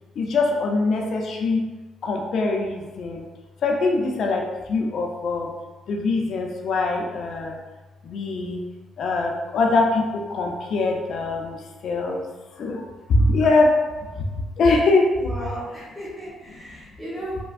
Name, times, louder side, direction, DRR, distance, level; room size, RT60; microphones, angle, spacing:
voice 1, 0.2-1.6 2.0-3.2 3.6-5.5 5.9-7.6 8.0-8.6 9.0-12.3 12.6-13.7 14.1-14.3 14.6-15.1, left 3 dB, 65° left, 1 dB, 0.5 m, -23 dB
voice 2, 15.2-17.4, equal, ahead, -9 dB, 1.0 m, -35 dB
3.3 x 2.2 x 2.4 m, 1.2 s
cardioid pair, 90°, 0 cm